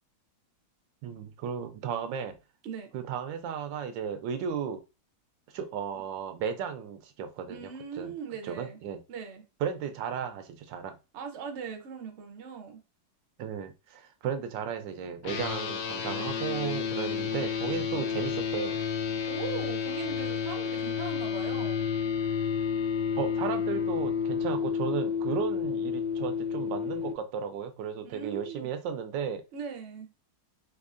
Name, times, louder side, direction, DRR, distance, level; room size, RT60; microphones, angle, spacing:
voice 1, 1.0-2.3 2.9-4.8 5.5-7.7 8.0-8.1 8.4-9.0 9.6-11.0 13.4-18.8 23.2-29.4, right 7 dB, 85° right, 1.3 m, -34 dB
voice 2, 7.5-8.8 9.1-9.4 11.1-12.8 19.3-21.9 28.0-28.7 29.5-30.1, right 6 dB, 60° right, 0.7 m, -40 dB
sound 1, 15.2-27.1, left 7 dB, 80° left, 0.6 m, -30 dB
4.5 x 2.7 x 2.4 m
omnidirectional pair, 1.9 m